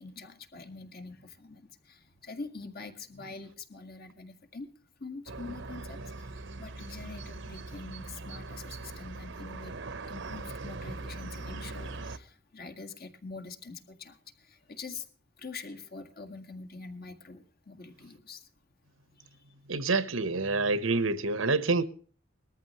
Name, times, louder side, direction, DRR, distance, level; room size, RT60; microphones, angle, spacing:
voice 1, 0.0-4.7 5.0-9.8 10.1-15.1 15.4-18.5 19.1-19.5, left 4 dB, 50° left, 1.9 m, -45 dB
sound 1, 5.3-12.2, right 3 dB, 65° right, 1.0 m, -41 dB
voice 2, 19.7-21.8, right 3 dB, 80° right, 1.3 m, -27 dB
20.0 x 14.0 x 3.1 m
head